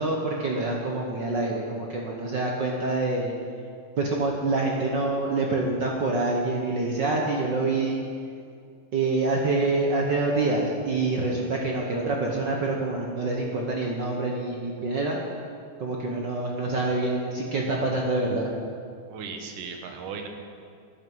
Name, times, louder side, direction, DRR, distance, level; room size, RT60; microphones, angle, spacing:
voice 1, 0.0-3.3 4.0-8.0 8.9-15.2 15.8-18.5, right 2 dB, 65° right, -1 dB, 1.1 m, -26 dB
voice 2, 19.1-20.3, right 5 dB, 90° right, 4 dB, 2.8 m, -36 dB
14.5 x 11.0 x 5.6 m, 2.3 s
omnidirectional pair, 3.6 m